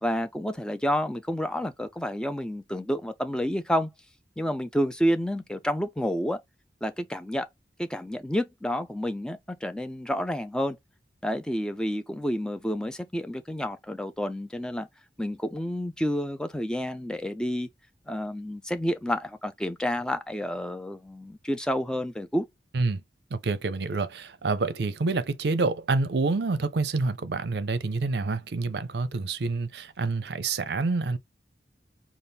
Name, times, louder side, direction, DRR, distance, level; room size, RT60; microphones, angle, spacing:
voice 1, 0.0-3.9 4.4-6.4 6.8-7.5 7.8-10.8 11.2-14.9 15.2-17.7 18.1-22.5, equal, 5° left, 0.3 m, -29 dB
voice 2, 23.3-31.2, right 3 dB, 65° right, 0.5 m, -27 dB
4.1 x 2.4 x 3.4 m
head